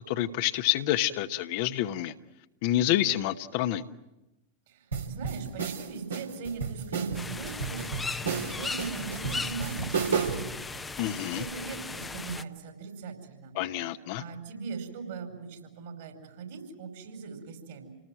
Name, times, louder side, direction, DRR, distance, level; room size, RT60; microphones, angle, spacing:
voice 1, 0.1-2.1 2.6-3.8 11.0-11.4 13.6-14.2, left 13 dB, 50° left, 9 dB, 1.0 m, -28 dB
voice 2, 4.7-11.0 11.3-13.5 14.2-17.9, right 5 dB, 55° right, 5 dB, 5.1 m, -40 dB
sound 1, 4.9-10.5, right 5 dB, 70° right, 3.1 m, -32 dB
sound 2, 7.1-12.4, left 4 dB, 10° left, 0.9 m, -37 dB
28.0 x 19.0 x 9.1 m, 0.98 s
figure-of-eight pair, 90°, 0 cm